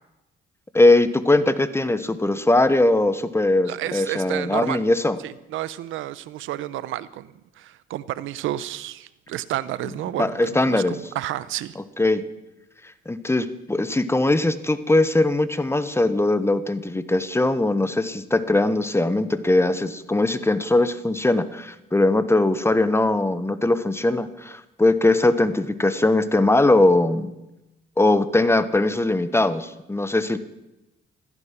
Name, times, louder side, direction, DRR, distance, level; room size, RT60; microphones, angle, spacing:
voice 1, 0.7-5.2 10.2-11.0 12.0-12.2 13.1-27.3 28.0-30.4, left 2 dB, 10° left, 13 dB, 1.1 m, -20 dB
voice 2, 3.7-4.8 5.2-11.8, right 14 dB, 90° right, 17 dB, 0.8 m, -31 dB
16.0 x 14.0 x 6.0 m, 0.95 s
cardioid pair, 90°, 20 cm